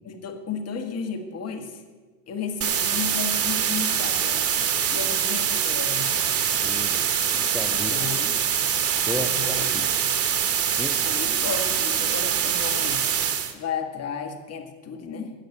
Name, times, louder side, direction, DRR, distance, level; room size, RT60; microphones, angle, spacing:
voice 1, 0.1-1.8 2.3-4.5 4.9-6.1 7.7-8.4 9.2-9.7 11.0-13.1 13.5-15.3, left 6 dB, 30° left, 4 dB, 1.9 m, -33 dB
sound 1, 2.6-13.5, right 8 dB, 30° right, 1.2 m, -24 dB
voice 2, 6.6-7.9 9.0-10.0 10.7-11.1, left 1 dB, ahead, 7 dB, 0.5 m, -35 dB
16.5 x 6.5 x 7.9 m, 1.4 s
figure-of-eight pair, 85°, 47 cm